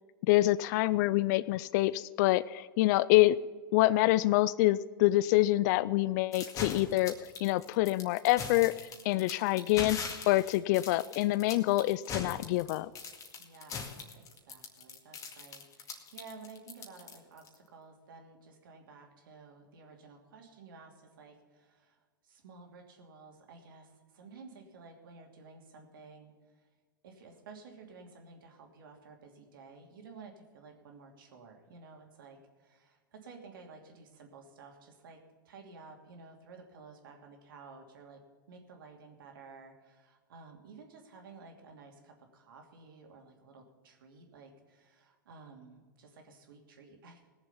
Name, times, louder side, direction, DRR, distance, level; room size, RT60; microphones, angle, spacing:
voice 1, 0.3-3.4 3.7-7.1 7.4-8.7 9.0-12.9, left 17 dB, 55° left, 17 dB, 0.4 m, -26 dB
sound 1, 6.3-17.5, left 5 dB, 30° left, 2.1 m, -41 dB
voice 2, 13.4-13.9 14.1-26.7 27.0-35.2 35.4-38.2 38.5-47.3, right 4 dB, 75° right, 2 dB, 2.7 m, -53 dB
18.5 x 7.1 x 5.7 m, 1.5 s
hypercardioid pair, 115°, 11 cm